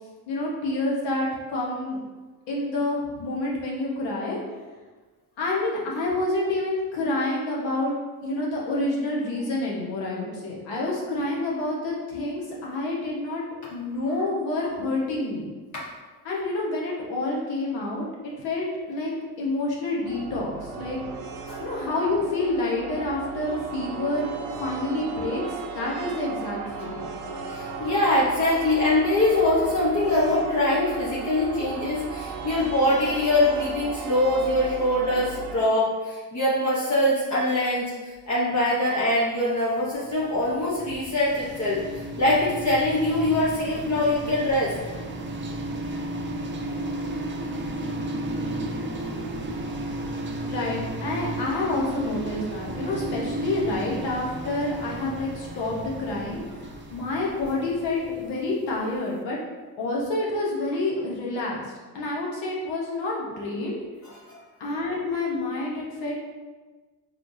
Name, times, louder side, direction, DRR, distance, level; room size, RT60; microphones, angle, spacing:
voice 1, 0.3-2.0 2.5-4.4 5.4-7.9 8.2-13.4 13.7-15.4 16.2-18.1 18.4-19.1 19.4-21.0 21.6-24.3 24.6-27.1 50.4-59.4 59.8-61.6 61.9-63.8 64.6-66.1, left 2 dB, 85° left, -4 dB, 1.2 m, -28 dB
sound 1, 20.0-35.6, right 5 dB, 70° right, 0.7 m, -35 dB
voice 2, 27.5-44.8 49.0-49.1 64.3-64.4, left 1 dB, 40° left, -7 dB, 0.9 m, -23 dB
sound 2, 39.8-58.8, right 1 dB, 30° right, 0.5 m, -34 dB
4.4 x 3.4 x 2.6 m, 1.3 s
cardioid pair, 90°, 43 cm